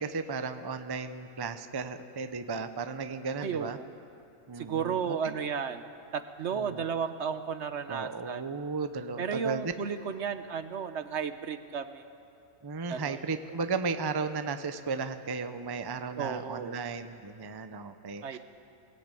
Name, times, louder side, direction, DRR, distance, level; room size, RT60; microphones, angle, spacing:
voice 1, 0.0-3.8 4.5-5.3 6.5-6.8 7.9-9.7 12.6-18.4, right 4 dB, 25° right, 10 dB, 0.6 m, -35 dB
voice 2, 3.4-3.9 4.6-5.9 6.1-8.5 9.2-12.0 12.9-13.2 16.2-16.8 18.2-18.4, right 6 dB, 60° right, 10 dB, 1.0 m, -33 dB
22.5 x 17.0 x 9.0 m, 2.7 s
omnidirectional pair, 1.5 m